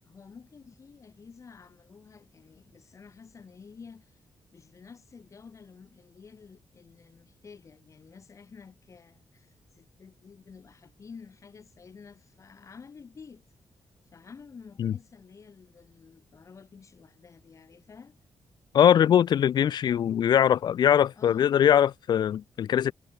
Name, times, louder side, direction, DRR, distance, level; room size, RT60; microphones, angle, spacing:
voice 1, 0.0-4.2 4.5-13.4 14.1-18.2 21.2-21.5, left 5 dB, 40° left, 4.4 m, -50 dB
voice 2, 18.7-22.9, left 9 dB, 60° left, 0.5 m, -21 dB
wide cardioid pair, 135°, 8 cm